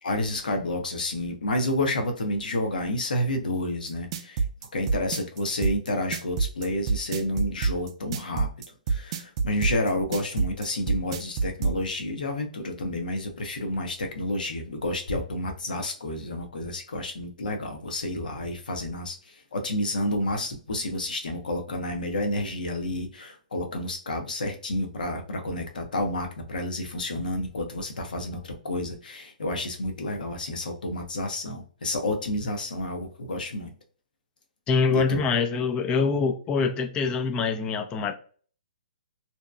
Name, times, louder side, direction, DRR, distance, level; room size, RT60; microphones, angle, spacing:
voice 1, 0.0-4.4 4.7-8.5 8.9-33.7 34.9-35.2, left 1 dB, 75° left, 0.7 m, -30 dB
sound 1, 3.9-11.8, right 5 dB, 45° right, 0.4 m, -26 dB
voice 2, 34.7-38.2, left 4 dB, 20° left, 0.4 m, -24 dB
2.7 x 2.2 x 2.2 m
hypercardioid pair, 135°, 5 cm